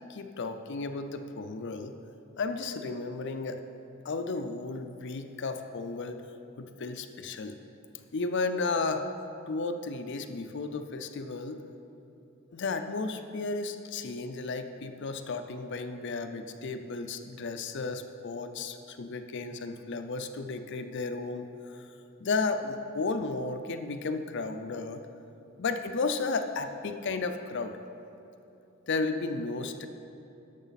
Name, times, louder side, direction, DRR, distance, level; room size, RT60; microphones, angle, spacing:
voice 1, 0.1-1.9 2.4-3.6 4.0-6.2 6.6-7.5 8.1-9.1 9.5-11.6 12.5-21.9 22.2-25.0 25.6-27.8 28.9-29.9, left 3 dB, 55° left, 8 dB, 0.5 m, -33 dB
11.0 x 7.4 x 4.0 m, 2.9 s
head